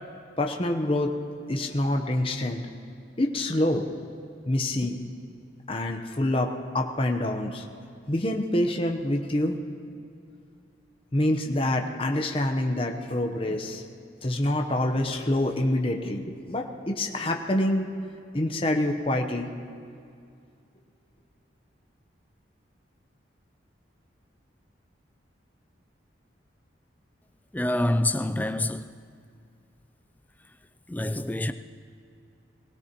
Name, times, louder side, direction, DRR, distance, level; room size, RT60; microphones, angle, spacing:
voice 1, 0.4-1.2 1.5-2.6 3.2-3.9 4.4-5.0 5.7-7.6 8.1-9.6 11.1-13.8 14.2-17.9 18.3-19.5, left 1 dB, 30° left, 0.8 m, -26 dB
voice 2, 27.5-28.9 30.9-31.5, left 1 dB, 10° left, 0.3 m, -26 dB
22.5 x 17.0 x 3.0 m
head